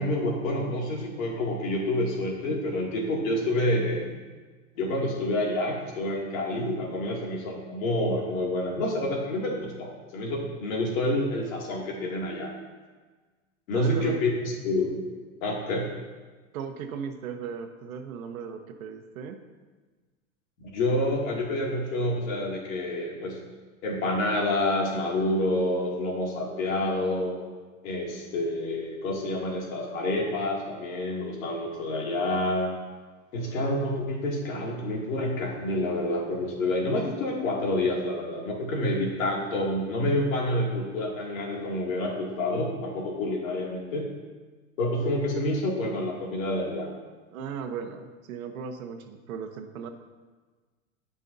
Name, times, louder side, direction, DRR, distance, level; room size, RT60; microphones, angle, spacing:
voice 1, 0.0-4.2 4.8-12.5 13.7-14.3 14.6-15.0 15.4-15.9 20.6-23.4 23.8-27.4 27.8-32.8 33.3-44.1 44.8-46.9, left 1 dB, 75° left, -2 dB, 2.6 m, -28 dB
voice 2, 13.7-14.2 16.5-19.4 47.3-49.9, right 6 dB, 80° right, 6 dB, 1.1 m, -37 dB
15.5 x 5.5 x 2.7 m, 1.4 s
supercardioid pair, 140°, 41 cm